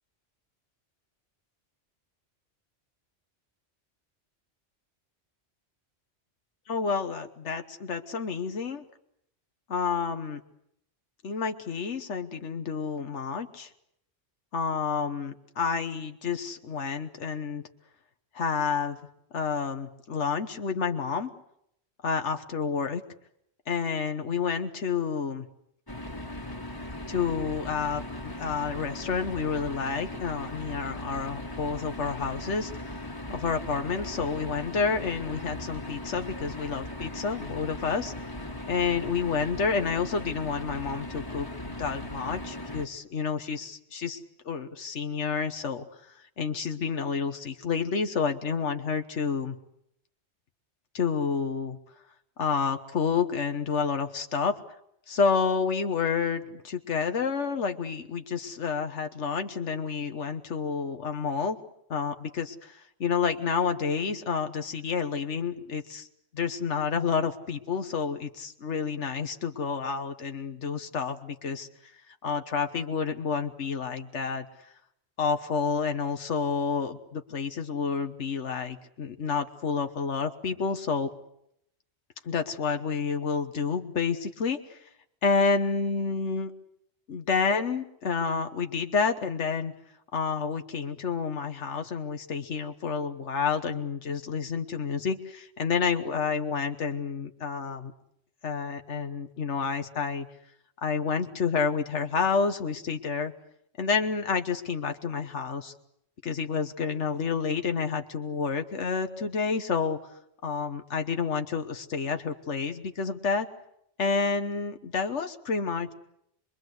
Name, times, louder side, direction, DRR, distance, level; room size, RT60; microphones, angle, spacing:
voice 1, 6.7-8.8 9.7-10.4 11.2-13.7 14.5-17.6 18.3-19.0 19.3-21.3 22.0-23.0 23.7-25.5 27.1-38.1 38.7-45.8 46.1-49.6 50.9-51.8 52.4-54.6 55.1-61.6 61.9-66.1 66.3-71.7 72.1-74.5 75.2-81.1 82.2-84.8 85.2-86.5 87.1-89.7 90.1-97.9 98.4-100.3 100.8-103.3 103.8-105.7 106.2-110.1 110.4-113.5 114.0-115.9, left 5 dB, 85° left, 6 dB, 1.5 m, -29 dB
sound 1, 25.9-42.9, left 1 dB, 20° left, 1.8 m, -38 dB
26.5 x 22.0 x 8.0 m, 0.75 s
omnidirectional pair, 1.2 m